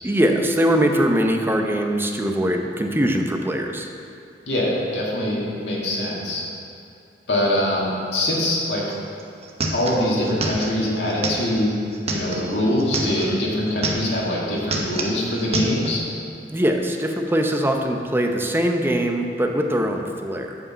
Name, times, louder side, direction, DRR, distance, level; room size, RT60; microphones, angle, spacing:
voice 1, 0.0-3.9 13.2-13.5 16.5-20.6, equal, 15° right, 3 dB, 0.7 m, -22 dB
voice 2, 4.5-6.4 7.3-9.0 9.7-11.7 12.1-16.0, left 1 dB, 75° left, -5 dB, 1.7 m, -23 dB
sound 1, 8.9-9.0 9.2-13.4 13.7-14.3 14.6-16.0, right 2 dB, 35° right, 0.9 m, -28 dB
8.1 x 5.0 x 7.3 m, 2.6 s
head